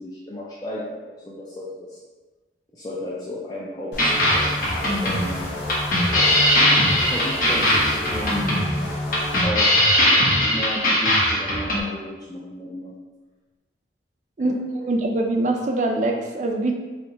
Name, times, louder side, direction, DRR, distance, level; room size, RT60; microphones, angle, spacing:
voice 1, 0.0-2.0 2.7-5.5 6.1-8.5 9.4-12.9 14.4-14.6, left 1 dB, 20° left, -6 dB, 0.4 m, -34 dB
sound 1, 3.9-9.4, left 1 dB, 75° left, 1.1 m, -30 dB
sound 2, 4.0-11.8, left 1 dB, 50° left, 0.9 m, -20 dB
voice 2, 14.4-16.7, right 2 dB, 45° right, 3 dB, 0.4 m, -23 dB
3.3 x 2.7 x 4.0 m, 1.3 s
head